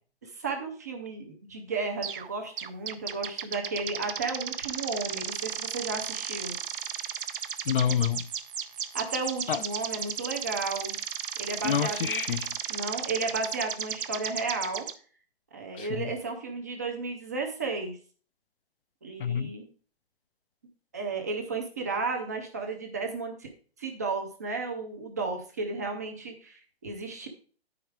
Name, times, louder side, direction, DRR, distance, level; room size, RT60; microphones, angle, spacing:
voice 1, 0.2-6.6 8.9-10.9 11.4-12.2 12.7-14.9 15.5-18.0 19.0-19.7 20.9-23.5 23.8-27.3, right 3 dB, 15° right, 0.5 m, -33 dB
sound 1, 2.0-2.3 2.6-14.9, right 8 dB, 55° right, 0.6 m, -35 dB
voice 2, 7.7-8.3 9.5-9.6 11.6-12.6 15.7-16.1 19.2-19.5, left 8 dB, 55° left, 0.4 m, -28 dB
9.0 x 5.0 x 4.6 m
hypercardioid pair, 165°, 32 cm